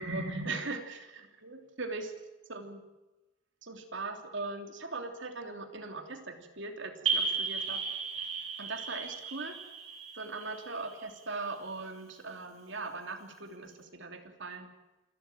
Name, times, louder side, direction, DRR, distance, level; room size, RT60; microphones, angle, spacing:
voice 1, 0.0-2.1 2.5-2.8 3.6-7.8 8.6-9.6 10.2-14.7, right 3 dB, 60° right, 5 dB, 3.2 m, -39 dB
sound 1, 7.1-11.5, right 5 dB, 80° right, 5.1 m, -35 dB
28.0 x 13.5 x 9.2 m, 1.1 s
head